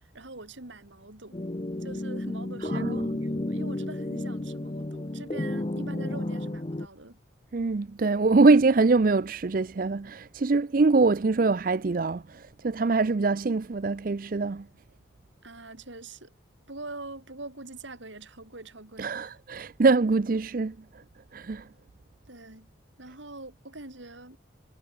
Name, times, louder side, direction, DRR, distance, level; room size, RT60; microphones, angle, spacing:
voice 1, 0.1-1.4 1.8-7.2 15.4-16.3 16.7-19.4 22.3-22.7 23.0-24.4, right 2 dB, 70° right, 3.6 m, -43 dB
sound 1, 1.3-6.9, left 1 dB, 30° left, 0.7 m, -32 dB
voice 2, 7.5-14.6 19.0-20.7 21.3-21.6, right 3 dB, 45° right, 0.5 m, -23 dB
head